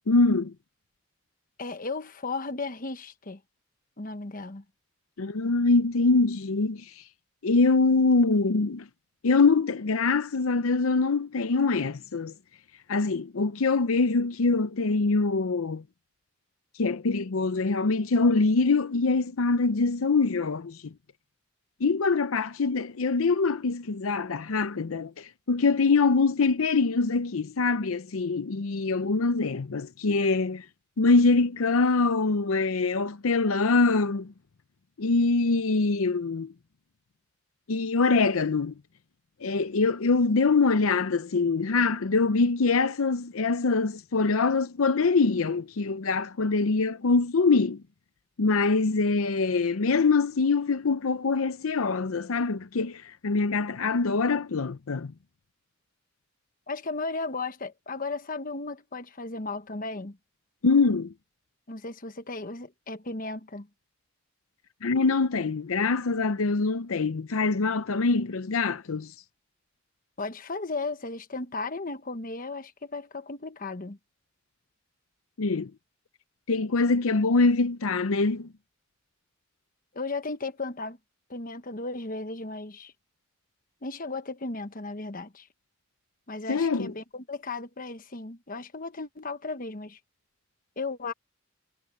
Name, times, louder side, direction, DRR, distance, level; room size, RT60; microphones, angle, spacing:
voice 1, 0.1-0.5 5.2-6.9 7.4-8.9 9.2-12.3 12.9-15.8 16.8-20.8 21.8-30.7 31.0-34.3 35.0-36.5 37.7-38.7 39.4-47.8 48.4-55.1 60.6-61.1 64.8-69.1 75.4-75.7 76.5-78.5 86.5-86.9, left 3 dB, 85° left, 0.7 m, -24 dB
voice 2, 1.6-3.4 4.0-4.6 56.7-60.2 61.7-63.7 70.2-74.0 79.9-81.0 81.3-82.9 83.8-85.5 86.3-90.0 90.8-91.1, left 3 dB, 40° left, 1.2 m, -35 dB
head